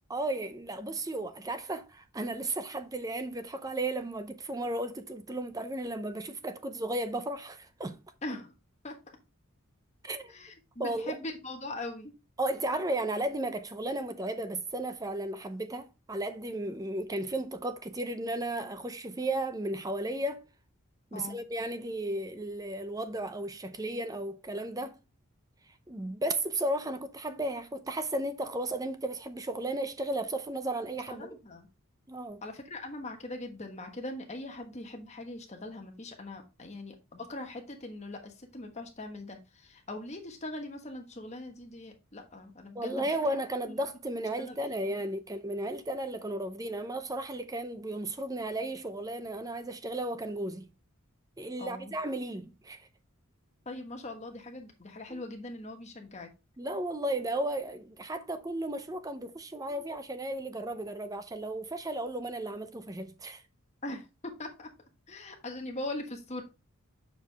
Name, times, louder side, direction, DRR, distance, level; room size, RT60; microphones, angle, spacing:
voice 1, 0.1-8.0 10.0-10.3 10.8-11.2 12.4-20.4 21.1-25.0 25.9-31.3 32.1-32.4 42.7-50.7 51.4-52.9 55.1-55.2 56.6-63.4, right 1 dB, 15° right, 0.5 m, -34 dB
voice 2, 8.2-8.5 8.8-8.9 10.3-12.1 21.1-21.4 31.1-31.7 32.4-43.2 44.4-44.6 44.9-45.1 51.6-51.9 53.6-56.3 63.8-64.7 65.1-66.4, left 2 dB, 30° left, 1.3 m, -41 dB
7.1 x 4.8 x 3.4 m
head